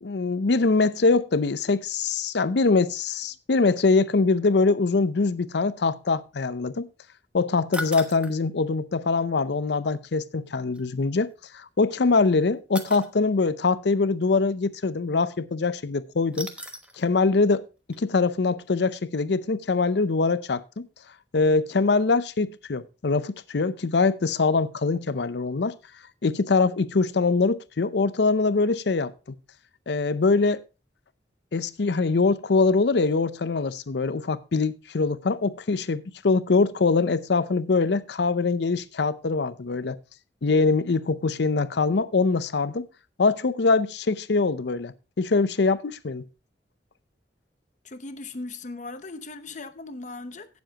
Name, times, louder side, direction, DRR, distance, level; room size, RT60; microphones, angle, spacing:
voice 1, 0.0-6.9 7.3-16.5 17.0-17.6 18.0-20.9 21.3-25.7 26.2-29.1 29.9-30.6 31.5-40.0 40.4-42.9 43.2-46.2, left 4 dB, 70° left, 0.6 m, -23 dB
sound 1, 7.7-8.4 10.7-10.8 12.7-13.1 16.3-17.0 17.4-17.5 17.9-18.0, equal, 5° right, 1.1 m, -36 dB
voice 2, 47.8-50.6, left 3 dB, 45° left, 0.9 m, -38 dB
16.5 x 7.2 x 2.9 m
head